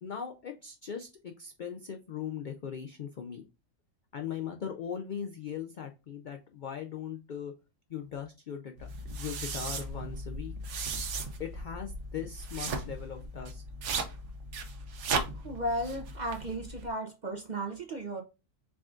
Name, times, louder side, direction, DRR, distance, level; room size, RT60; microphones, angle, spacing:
voice 1, 0.0-3.4 4.1-7.5 7.9-10.5 11.4-13.6, left 8 dB, 70° left, 0.4 m, -39 dB
sound 1, 8.8-16.9, right 3 dB, 65° right, 1.0 m, -37 dB
voice 2, 15.3-18.2, right 1 dB, 45° right, 0.6 m, -35 dB
4.8 x 3.6 x 2.4 m
omnidirectional pair, 1.4 m